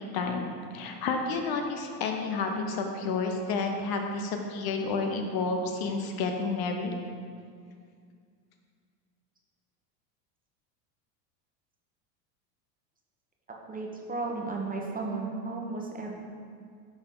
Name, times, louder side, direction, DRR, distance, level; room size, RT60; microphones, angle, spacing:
voice 1, 0.0-6.9, left 4 dB, 50° left, 4 dB, 0.9 m, -30 dB
voice 2, 13.7-16.1, right 3 dB, 15° right, -1 dB, 1.1 m, -34 dB
10.5 x 3.9 x 3.9 m, 2.2 s
hypercardioid pair, 95°, 49 cm